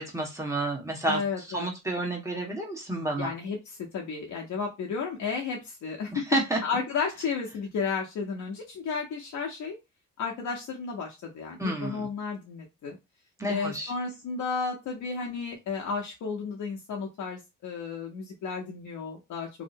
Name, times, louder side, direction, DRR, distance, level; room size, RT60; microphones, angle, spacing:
voice 1, 0.0-3.3 6.1-6.6 11.6-12.1 13.4-13.9, right 1 dB, 10° right, -1 dB, 1.1 m, -30 dB
voice 2, 1.1-1.7 3.2-3.6 3.9-6.2 6.6-9.8 10.2-13.0 13.5-19.5, left 5 dB, 70° left, -1 dB, 0.7 m, -33 dB
2.8 x 2.0 x 2.6 m, 0.23 s
cardioid pair, 70°, 31 cm